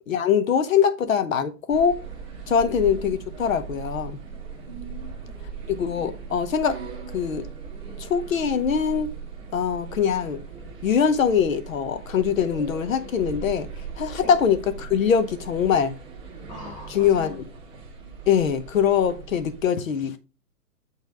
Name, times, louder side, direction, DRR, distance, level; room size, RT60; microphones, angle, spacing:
voice 1, 0.1-2.0 2.5-4.2 5.7-6.8 7.1-7.4 8.0-9.1 9.5-10.4 10.8-13.7 14.0-15.9 16.9-17.4 18.3-20.2, left 7 dB, 55° left, 1.0 m, -22 dB
sound 1, 1.7-19.6, right 6 dB, 5° right, 0.6 m, -39 dB
voice 2, 4.7-5.4 14.2-14.3 16.5-17.3, left 1 dB, 15° left, 1.0 m, -41 dB
8.3 x 3.4 x 4.4 m
hypercardioid pair, 170°, 48 cm